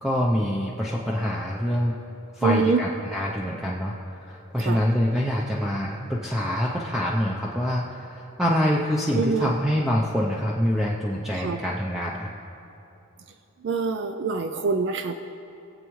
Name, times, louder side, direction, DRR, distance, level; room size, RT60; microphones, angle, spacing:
voice 1, 0.0-1.9 2.4-12.3, equal, ahead, -3 dB, 0.6 m, -25 dB
voice 2, 2.4-2.9 4.6-4.8 9.2-9.5 11.3-11.6 13.6-15.1, right 4 dB, 55° right, 7 dB, 0.4 m, -25 dB
20.0 x 8.0 x 3.1 m, 3.0 s
head